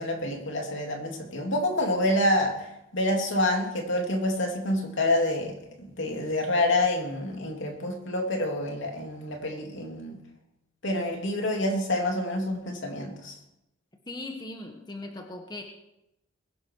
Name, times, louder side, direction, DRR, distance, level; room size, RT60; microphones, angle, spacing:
voice 1, 0.0-2.7 2.9-10.2 10.8-13.3, left 1 dB, 65° left, 2 dB, 2.9 m, -27 dB
voice 2, 14.1-15.6, left 2 dB, 20° left, 2 dB, 1.5 m, -39 dB
22.0 x 10.5 x 4.8 m, 0.87 s
head